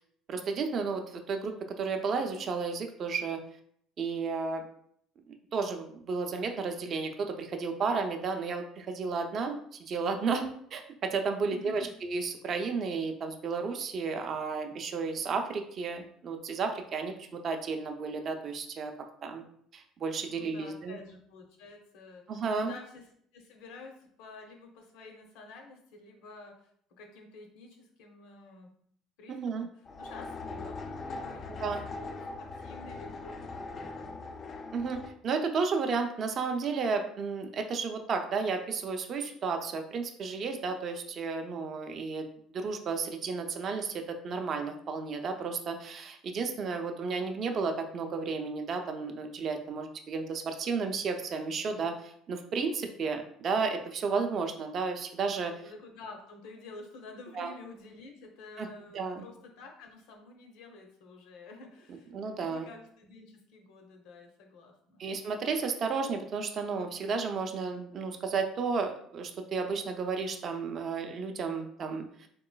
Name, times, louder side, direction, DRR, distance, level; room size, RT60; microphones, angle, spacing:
voice 1, 0.3-3.4 4.0-4.6 5.3-18.9 19.2-19.4 19.7-21.0 22.3-22.7 29.3-29.7 31.6-31.8 34.7-35.0 35.2-42.3 42.5-55.5 57.4-57.5 58.6-58.7 58.9-59.3 62.1-62.7 65.0-72.1, right 4 dB, 40° right, 5 dB, 0.4 m, -33 dB
voice 2, 11.4-11.9 20.3-23.1 23.3-26.7 27.0-28.7 29.2-29.7 30.0-34.2 55.6-65.1, left 3 dB, 85° left, 3 dB, 0.7 m, -50 dB
sound 1, 29.8-35.1, left 3 dB, 35° left, 0.3 m, -41 dB
3.8 x 2.9 x 2.3 m, 0.66 s
cardioid pair, 135°, 0 cm